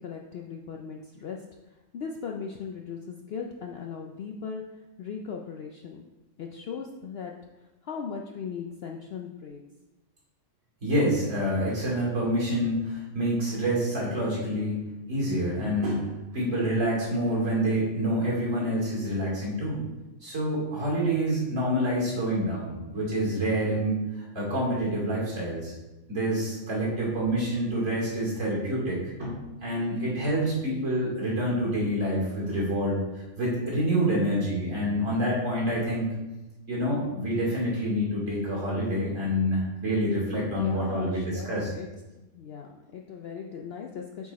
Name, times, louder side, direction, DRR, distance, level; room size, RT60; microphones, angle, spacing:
voice 1, 0.0-1.4 1.9-4.6 5.0-6.0 6.4-7.3 7.8-9.6 40.5-41.9 42.2-44.3, left 6 dB, 60° left, 2 dB, 0.6 m, -38 dB
voice 2, 10.8-14.8 15.1-16.1 16.3-19.8 20.2-25.7 26.1-36.2 36.7-41.7, equal, 60° right, -5 dB, 3.1 m, -27 dB
8.7 x 4.7 x 4.1 m, 1.1 s
omnidirectional pair, 1.5 m